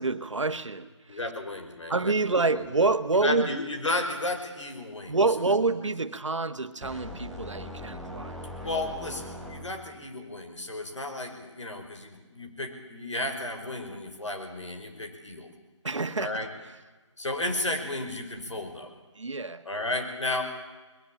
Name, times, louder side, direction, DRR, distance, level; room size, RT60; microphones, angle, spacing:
voice 1, 0.0-1.2 1.9-3.5 5.1-8.3 15.8-16.3 19.1-19.7, right 3 dB, 70° right, 10 dB, 1.6 m, -27 dB
voice 2, 1.1-2.1 2.4-2.7 3.2-5.2 8.6-15.5 16.2-16.5 17.2-18.9 19.7-20.4, left 2 dB, 70° left, 5 dB, 5.3 m, -33 dB
sound 1, 6.8-10.0, left 1 dB, ahead, 0.9 m, -40 dB
21.0 x 19.5 x 8.8 m, 1.2 s
figure-of-eight pair, 160°, 16 cm